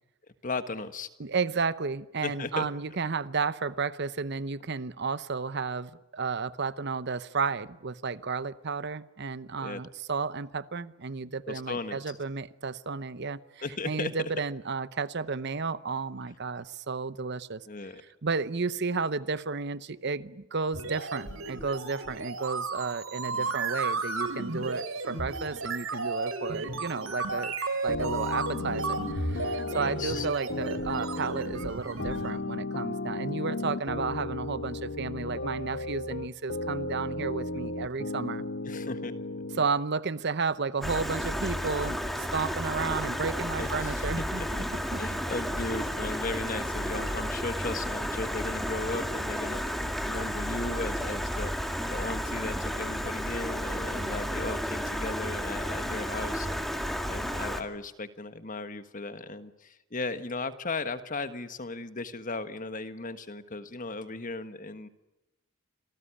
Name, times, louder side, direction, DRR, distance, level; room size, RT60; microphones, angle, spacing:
voice 1, 0.4-1.1 2.2-2.7 9.6-9.8 11.5-12.2 13.6-14.1 17.7-18.0 23.3-23.5 29.7-30.2 38.6-39.1 43.6-44.7 45.0-49.6 50.0-51.5 51.9-56.7 57.1-64.9, left 3 dB, 40° left, 11 dB, 1.4 m, -36 dB
voice 2, 1.2-17.6 18.2-27.5 27.8-38.4 39.6-45.0, right 4 dB, 55° right, 16 dB, 0.8 m, -32 dB
sound 1, 20.7-32.3, right 3 dB, 80° right, 3.6 m, -34 dB
sound 2, 27.9-39.7, left 2 dB, 60° left, 1.2 m, -35 dB
Stream, 40.8-57.6, equal, ahead, 2.0 m, -32 dB
27.0 x 18.0 x 10.0 m, 0.97 s
head